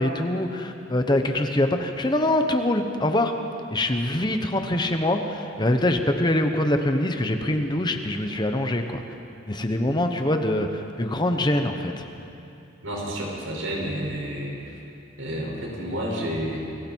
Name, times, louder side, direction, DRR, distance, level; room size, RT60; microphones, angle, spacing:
voice 1, 0.0-3.3 3.7-9.0 9.5-12.1, left 1 dB, 20° left, 5 dB, 1.1 m, -24 dB
voice 2, 12.8-14.8 15.2-16.7, equal, 85° right, -2 dB, 6.3 m, -30 dB
29.0 x 22.5 x 4.7 m, 2.7 s
head